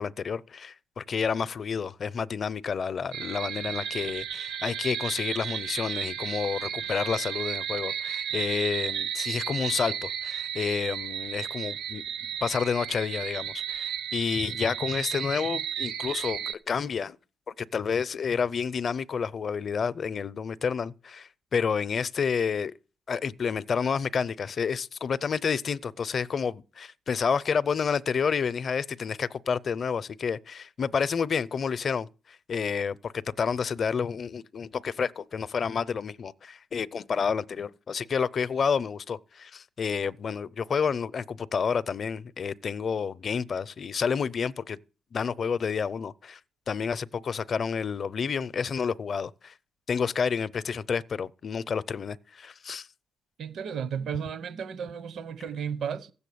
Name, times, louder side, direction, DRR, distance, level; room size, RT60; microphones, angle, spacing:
voice 1, 0.0-17.2 17.5-22.7 23.1-44.8 45.1-46.4 46.7-49.5 49.9-52.9, left 6 dB, 45° left, 0.6 m, -30 dB
sound 1, 3.1-16.5, right 9 dB, 85° right, 1.1 m, -33 dB
voice 2, 53.4-56.1, right 7 dB, 65° right, 0.9 m, -33 dB
15.0 x 7.1 x 8.5 m
cardioid pair, 90°, 0 cm